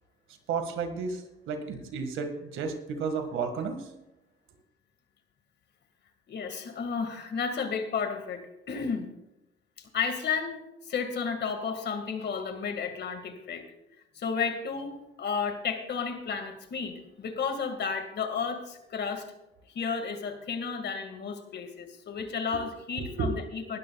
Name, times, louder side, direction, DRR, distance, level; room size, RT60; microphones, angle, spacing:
voice 1, 0.5-3.9 23.0-23.4, right 5 dB, 85° right, 7 dB, 1.9 m, -32 dB
voice 2, 6.3-9.1 9.8-13.7 14.2-19.3 19.7-23.8, left 6 dB, 60° left, 7 dB, 2.0 m, -32 dB
19.5 x 12.5 x 2.4 m, 0.92 s
cardioid pair, 90°, 20 cm